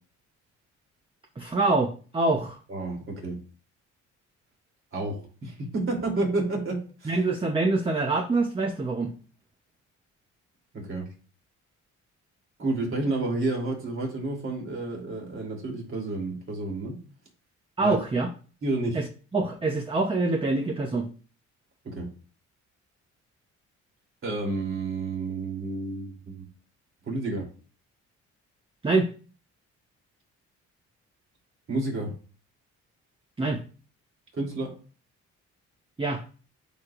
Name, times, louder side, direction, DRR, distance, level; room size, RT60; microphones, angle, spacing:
voice 1, 1.4-2.6 7.1-9.1 17.8-18.3 18.9-19.1 19.3-21.1 28.8-29.1 33.4-33.6 36.0-36.2, right 3 dB, 20° right, 3 dB, 0.8 m, -25 dB
voice 2, 2.7-3.4 4.9-7.2 10.7-11.1 12.6-17.0 17.8-18.0 18.6-19.0 21.8-22.1 24.2-26.5 27.1-27.5 31.7-32.1 34.3-34.8, right 2 dB, 45° right, -1 dB, 3.1 m, -30 dB
9.1 x 5.0 x 2.5 m, 0.39 s
cardioid pair, 90°, 30 cm